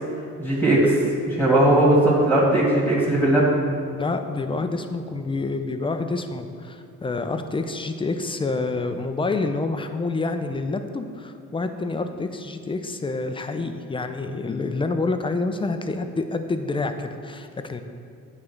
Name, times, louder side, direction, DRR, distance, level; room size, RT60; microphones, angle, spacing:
voice 1, 0.4-1.0 1.3-3.5, right 1 dB, 5° right, -7 dB, 1.7 m, -18 dB
voice 2, 3.9-17.8, left 3 dB, 15° left, 7 dB, 0.5 m, -28 dB
8.5 x 3.2 x 5.9 m, 2.3 s
cardioid pair, 90°, 30 cm